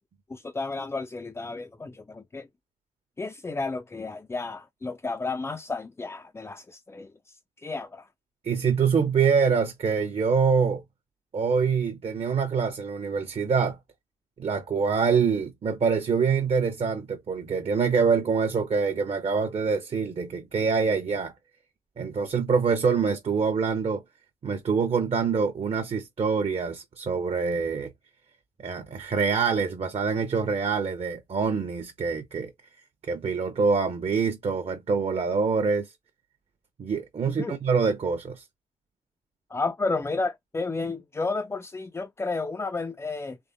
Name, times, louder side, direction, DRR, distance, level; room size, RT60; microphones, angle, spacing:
voice 1, 0.3-2.5 3.2-8.1 37.3-37.6 39.5-43.4, left 3 dB, 10° left, 0.5 m, -32 dB
voice 2, 8.4-10.8 11.3-13.8 14.4-21.3 22.0-24.0 24.4-27.9 28.6-32.5 33.0-35.9 36.8-38.4, right 5 dB, 30° right, 0.8 m, -25 dB
3.5 x 3.3 x 2.6 m
figure-of-eight pair, 45°, 20 cm